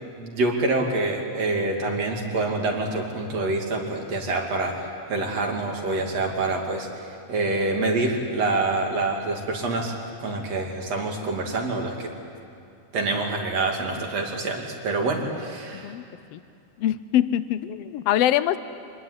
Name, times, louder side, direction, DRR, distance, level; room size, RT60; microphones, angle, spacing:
voice 1, 0.0-4.8 5.1-6.9 7.3-12.1 12.9-15.9, right 2 dB, 60° right, 1 dB, 3.7 m, -26 dB
voice 2, 15.7-16.0 16.3-16.4 16.8-18.6, left 12 dB, 70° left, 14 dB, 1.6 m, -23 dB
25.5 x 20.5 x 9.7 m, 2.5 s
omnidirectional pair, 3.3 m